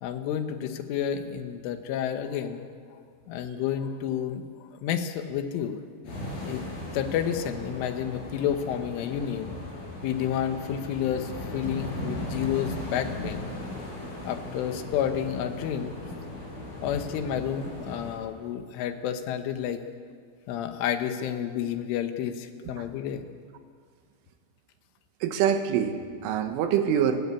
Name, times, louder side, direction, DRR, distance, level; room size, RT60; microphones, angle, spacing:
voice 1, 0.0-3.0 3.3-5.8 6.5-6.7 6.9-9.6 10.0-13.5 14.2-16.0 16.8-19.8 20.5-23.2, left 9 dB, 85° left, 8 dB, 3.8 m, -30 dB
sound 1, 6.0-18.2, left 1 dB, 50° left, 8.3 m, -37 dB
voice 2, 25.2-27.3, right 8 dB, 90° right, 7 dB, 4.0 m, -25 dB
29.5 x 14.0 x 8.5 m, 2.1 s
omnidirectional pair, 5.5 m